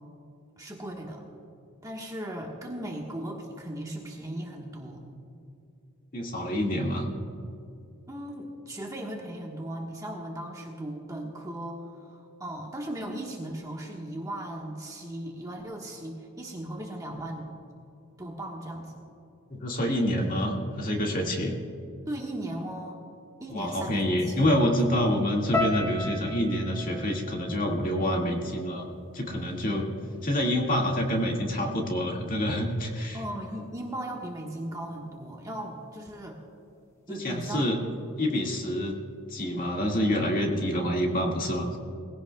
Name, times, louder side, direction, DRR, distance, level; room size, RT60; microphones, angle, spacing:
voice 1, 0.6-1.2 1.8-5.0 8.1-17.5 18.2-19.0 22.1-23.0 23.4-24.8 33.1-36.4 37.1-37.9, right 1 dB, 15° right, -1 dB, 1.3 m, -37 dB
voice 2, 6.1-7.1 19.5-21.6 23.5-28.9 29.1-29.9 30.2-33.2 37.1-37.8 38.2-39.0 39.3-41.8, equal, 40° left, 0 dB, 2.0 m, -27 dB
sound 1, 25.5-29.7 30.0-30.8 31.4-31.6, left 2 dB, 15° left, 1.2 m, -36 dB
21.0 x 16.0 x 2.3 m, 2.6 s
head